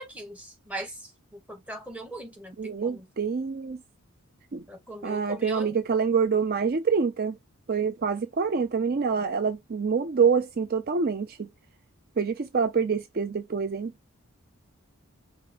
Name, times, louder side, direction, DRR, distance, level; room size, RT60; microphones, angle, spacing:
voice 1, 0.0-3.1 4.7-5.8, right 1 dB, 5° right, 1.4 m, -40 dB
voice 2, 2.6-3.8 4.5-4.6 5.0-7.4 7.7-11.5 12.2-13.9, right 5 dB, 40° right, 0.4 m, -26 dB
5.0 x 2.5 x 3.8 m
head